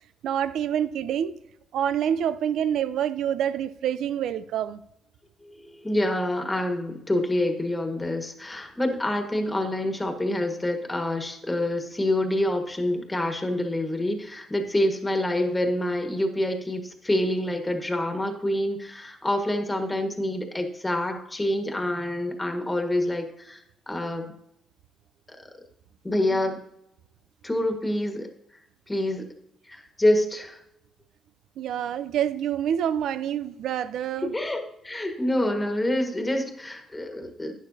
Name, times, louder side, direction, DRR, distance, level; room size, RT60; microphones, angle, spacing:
voice 1, 0.2-1.4 1.7-4.8 26.3-26.4 31.6-34.3, right 9 dB, 80° right, 0.5 m, -27 dB
voice 2, 5.4-23.6 23.9-24.3 25.4-25.5 26.0-26.6 27.4-28.3 28.9-29.2 29.7-30.6 34.2-37.5, left 1 dB, 15° left, 1.5 m, -27 dB
12.0 x 9.3 x 2.8 m
cardioid pair, 90°, 0 cm